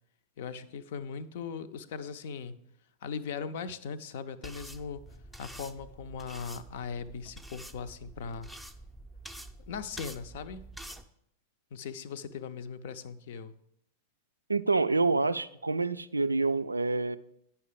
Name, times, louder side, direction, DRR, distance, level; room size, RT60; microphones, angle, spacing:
voice 1, 0.4-2.6 3.0-5.0 5.4-8.5 9.7-10.7 11.7-13.5, left 6 dB, 55° left, 13 dB, 0.5 m, -39 dB
sound 1, 4.4-11.0, right 1 dB, ahead, 0.5 m, -47 dB
voice 2, 14.5-17.2, right 3 dB, 80° right, 13 dB, 0.3 m, -27 dB
9.6 x 5.7 x 4.9 m, 0.77 s
figure-of-eight pair, 90°, 0 cm